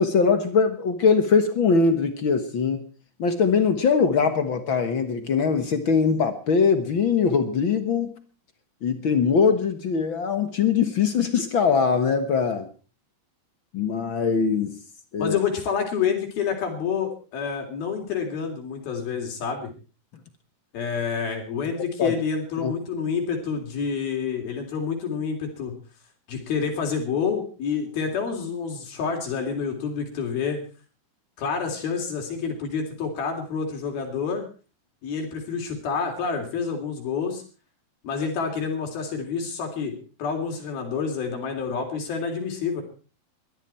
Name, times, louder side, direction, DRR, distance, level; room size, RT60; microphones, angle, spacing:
voice 1, 0.0-2.9 3.2-8.2 8.8-12.7 13.7-14.8 15.1-15.4 22.0-22.1 22.6-22.7, left 5 dB, 60° left, 9 dB, 1.3 m, -22 dB
voice 2, 15.2-19.7 20.7-25.7 26.3-30.6 31.4-34.4 35.0-37.4 38.0-42.8, left 6 dB, 80° left, 3 dB, 5.2 m, -28 dB
21.5 x 13.5 x 4.4 m, 0.37 s
omnidirectional pair, 4.2 m